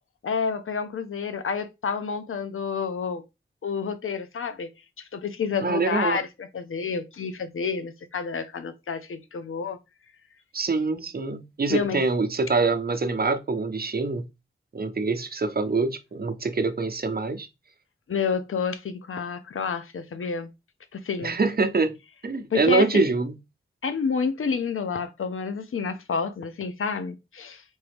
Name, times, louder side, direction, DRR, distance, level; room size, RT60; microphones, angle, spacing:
voice 1, 0.2-3.2 3.6-4.7 5.0-9.8 11.7-12.0 18.1-20.5 20.9-21.4 22.5-23.1 23.8-27.6, left 5 dB, 90° left, 0.6 m, -29 dB
voice 2, 5.6-6.2 10.5-14.3 14.7-17.5 21.2-23.4, right 3 dB, 45° right, 0.7 m, -25 dB
3.9 x 3.6 x 3.4 m
wide cardioid pair, 60°, 21 cm